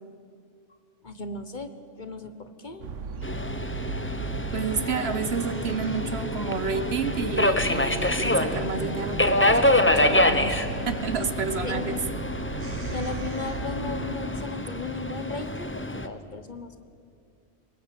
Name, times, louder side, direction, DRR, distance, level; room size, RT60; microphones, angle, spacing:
voice 1, 1.0-1.7 2.0-2.9 11.6-12.0 12.9-16.8, left 4 dB, 40° left, 9 dB, 1.3 m, -36 dB
sound 1, 2.8-14.1, right 4 dB, 90° right, 1.3 m, -36 dB
Subway metro underground, 3.2-16.1, left 1 dB, 10° left, 0.9 m, -26 dB
voice 2, 4.5-10.6 10.9-12.0, right 5 dB, 60° right, 11 dB, 1.3 m, -30 dB
23.5 x 20.5 x 8.5 m, 2.4 s
omnidirectional pair, 1.2 m